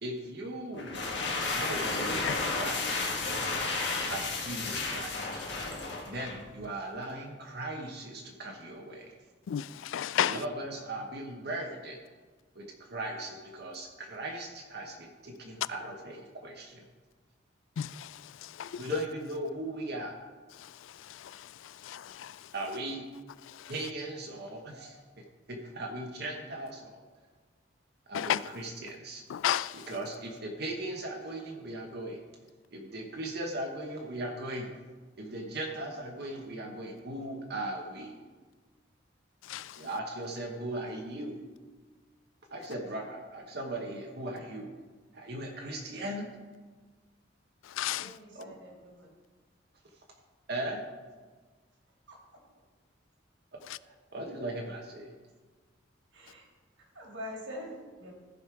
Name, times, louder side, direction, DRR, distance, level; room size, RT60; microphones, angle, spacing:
voice 1, 0.0-1.1 1.5-3.1 4.1-5.4 6.1-9.1 10.2-12.0 12.5-16.8 18.8-20.2 22.5-23.1 23.7-27.0 28.1-29.2 29.7-32.2 32.7-34.7 35.2-38.2 39.8-41.5 42.5-44.7 45.1-46.3 48.3-48.6 50.5-50.8 53.5-53.6 53.9-55.1, right 1 dB, 55° right, 1.1 m, -38 dB
sound 1, 0.7-6.5, left 3 dB, 60° left, 1.5 m, -32 dB
voice 2, 9.5-10.4 17.8-18.1 18.6-19.0 21.8-22.3 28.1-28.4 29.3-29.8 39.5-39.7 47.8-48.1, left 10 dB, 80° left, 0.3 m, -31 dB
voice 3, 48.0-49.1 52.1-52.4 56.1-56.5 56.8-58.1, equal, 75° right, 2.9 m, -45 dB
14.5 x 5.4 x 4.6 m
head